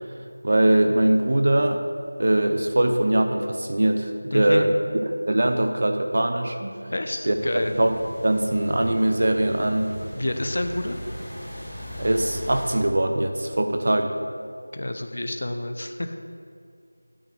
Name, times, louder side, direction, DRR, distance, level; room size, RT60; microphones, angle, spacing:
voice 1, 0.4-1.8 2.2-4.7 5.1-6.9 7.2-7.4 7.8-8.0 8.2-9.9 12.0-14.1, right 1 dB, 35° right, 5 dB, 0.6 m, -22 dB
voice 2, 4.3-4.7 6.9-7.7 10.2-11.0 14.7-16.2, left 1 dB, 35° left, 6 dB, 0.6 m, -29 dB
sound 1, 7.3-12.7, equal, 5° left, 1.0 m, -36 dB
8.8 x 5.0 x 7.7 m, 2.3 s
figure-of-eight pair, 180°, 0 cm